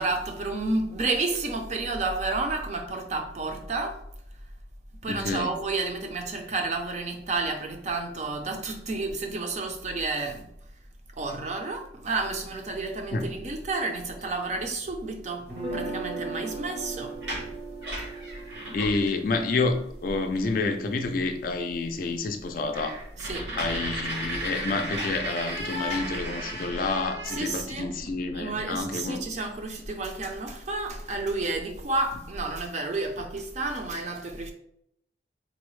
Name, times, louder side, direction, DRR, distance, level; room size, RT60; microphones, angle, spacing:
voice 1, 0.0-4.0 5.0-10.5 11.2-15.4 15.7-17.2 23.2-23.5 27.3-28.0 28.3-34.5, right 3 dB, 40° right, 0.5 m, -31 dB
voice 2, 5.1-5.5 13.1-13.3 18.7-19.8 20.0-23.0 23.6-29.2, left 3 dB, 50° left, 0.4 m, -29 dB
sound 1, 15.5-21.5, right 3 dB, 65° right, 0.9 m, -38 dB
Squeaking Door, 17.1-19.2 19.7-19.8 20.0-20.5 21.0-21.1 21.5-21.6 21.9-22.0 22.3-28.0 29.4-29.5 29.8-31.1 31.7-31.8 32.1-32.6, equal, 85° right, 1.2 m, -35 dB
3.8 x 2.0 x 3.1 m
head